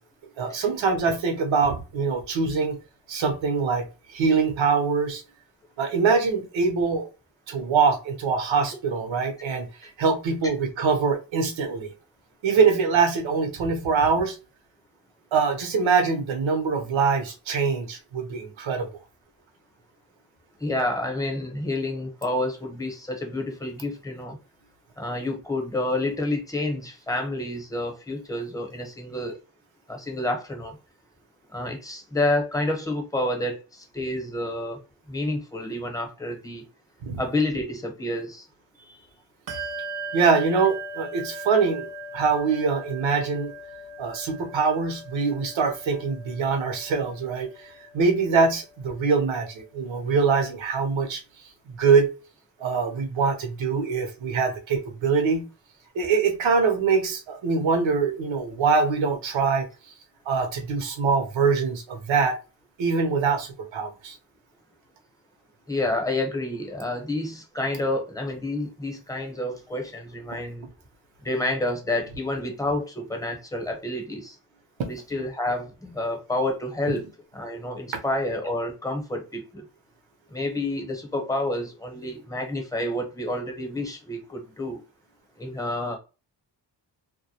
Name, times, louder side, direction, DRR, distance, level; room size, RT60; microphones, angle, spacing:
voice 1, 0.4-2.8 3.1-3.9 4.1-5.2 5.8-7.1 7.5-11.9 12.4-14.4 15.3-18.9 37.0-37.2 40.1-43.5 44.0-47.5 47.9-51.2 51.7-52.1 52.6-55.4 55.9-59.7 60.3-62.3 62.8-64.2 74.8-74.9, right 5 dB, 85° right, 0.7 m, -23 dB
voice 2, 20.6-24.4 25.0-29.4 29.9-30.8 31.5-34.8 35.1-36.7 37.2-38.5 38.8-39.0 65.7-70.7 71.2-74.4 74.9-77.1 77.3-79.6 80.3-84.8 85.4-86.0, left 1 dB, 10° left, 0.8 m, -29 dB
Bell, 39.5-49.5, right 2 dB, 55° right, 0.5 m, -39 dB
2.2 x 2.1 x 2.7 m
cardioid pair, 65°, 45 cm